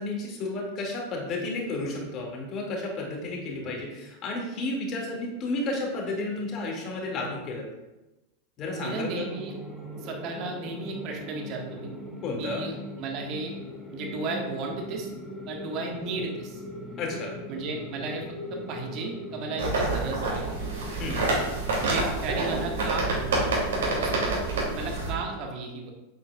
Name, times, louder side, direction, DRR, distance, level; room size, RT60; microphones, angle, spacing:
voice 1, 0.0-7.7 8.6-9.3 12.2-12.6 17.0-17.3 21.0-21.3, left 2 dB, 35° left, -1 dB, 2.4 m, -32 dB
sound 1, 8.7-25.4, left 1 dB, ahead, 1.4 m, -40 dB
voice 2, 8.8-9.5 10.0-11.9 12.4-12.7 13.0-13.5 13.9-15.1 15.5-16.6 17.5-20.6 21.8-23.5 23.8-24.2 24.5-25.9, right 3 dB, 40° right, 1 dB, 1.6 m, -34 dB
sound 2, 19.6-25.1, right 2 dB, 60° right, 2.9 m, -27 dB
8.4 x 7.9 x 2.4 m, 1.0 s
figure-of-eight pair, 90°, 0 cm